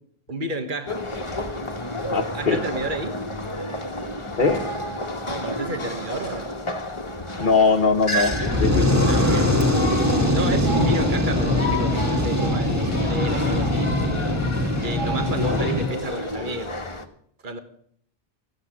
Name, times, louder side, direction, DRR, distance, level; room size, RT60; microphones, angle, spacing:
voice 1, 0.3-1.0 2.3-3.2 5.2-6.5 9.1-9.5 10.3-14.0 14.8-16.8 17.4-17.6, right 2 dB, 50° right, 7 dB, 1.7 m, -31 dB
sound 1, 0.8-17.0, left 1 dB, 30° left, 1.4 m, -31 dB
voice 2, 2.0-2.6 4.4-4.6 7.4-8.3 8.6-9.0 10.2-10.3 15.4-15.6, left 4 dB, 55° left, 2 dB, 1.2 m, -21 dB
Fire, 8.2-15.9, left 1 dB, 15° right, 2.2 m, -22 dB
15.0 x 8.4 x 9.6 m, 0.64 s
omnidirectional pair, 1.0 m